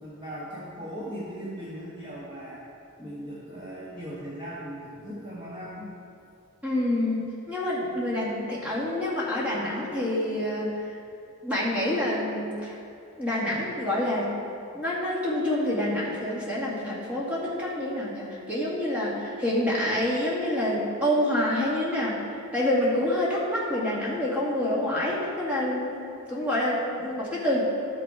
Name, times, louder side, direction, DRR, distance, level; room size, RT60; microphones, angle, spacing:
voice 1, 0.0-2.6 3.0-5.9, equal, 25° right, -8 dB, 1.2 m, -38 dB
voice 2, 6.6-10.9 11.4-12.8 13.2-14.3 14.7-22.2 22.5-26.0 26.3-27.6, left 1 dB, 5° right, -7 dB, 2.0 m, -27 dB
12.0 x 6.2 x 4.7 m, 2.6 s
head